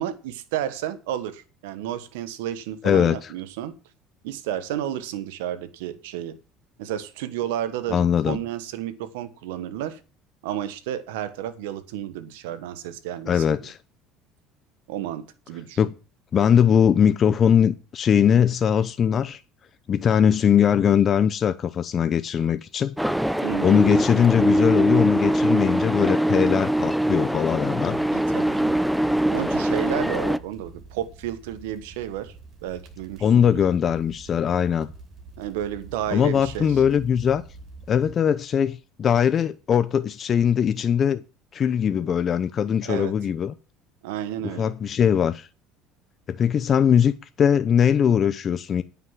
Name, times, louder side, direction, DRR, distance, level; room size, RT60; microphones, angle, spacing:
voice 1, 0.0-3.7 4.2-6.4 6.8-10.0 10.4-13.6 14.9-15.8 23.4-23.9 28.1-28.8 29.3-32.3 32.6-33.6 35.4-36.7 42.8-43.1 44.0-44.7, right 11 dB, 85° right, 1.2 m, -32 dB
voice 2, 2.8-3.3 7.9-8.4 13.3-13.8 15.8-15.9 16.3-19.4 19.9-22.9 23.6-28.0 33.2-34.9 36.1-37.4 37.9-41.2 41.5-43.5 44.4-45.5 46.3-48.8, left 8 dB, 40° left, 0.7 m, -21 dB
sound 1, 23.0-30.4, right 1 dB, ahead, 0.6 m, -22 dB
sound 2, 27.8-38.1, right 3 dB, 50° right, 5.9 m, -45 dB
9.5 x 6.0 x 7.4 m
supercardioid pair, 85°, 0 cm